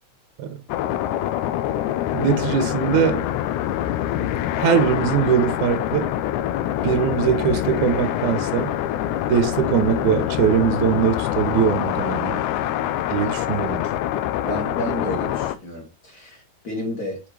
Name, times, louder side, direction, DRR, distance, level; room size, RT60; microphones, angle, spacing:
sound 1, 0.7-15.6, left 12 dB, 85° left, 2.0 m, -25 dB
voice 1, 2.1-3.2 4.6-6.1 6.8-8.7 9.3-12.4 13.1-13.8, right 8 dB, 85° right, 2.2 m, -21 dB
voice 2, 14.4-17.2, equal, 35° left, 1.9 m, -31 dB
6.6 x 4.9 x 3.2 m
omnidirectional pair, 3.4 m